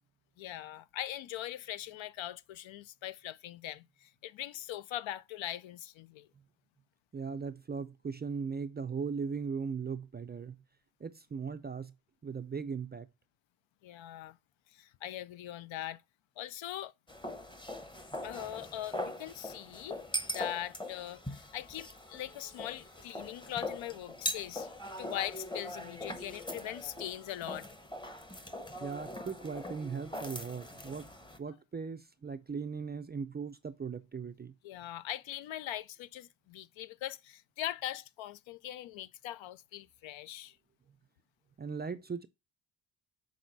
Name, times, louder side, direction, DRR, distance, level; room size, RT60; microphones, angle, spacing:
voice 1, 0.4-6.3 13.8-14.4 14.7-16.0 16.4-16.9 18.2-20.0 20.3-27.7 34.6-40.6, left 13 dB, 70° left, 0.6 m, -41 dB
voice 2, 7.1-10.6 11.0-11.9 12.2-13.1 28.8-31.1 31.4-34.5 41.6-42.3, right 5 dB, 25° right, 0.4 m, -38 dB
sound 1, 17.1-31.4, left 1 dB, 10° left, 0.8 m, -41 dB
6.3 x 4.2 x 3.9 m
cardioid pair, 105°, 49 cm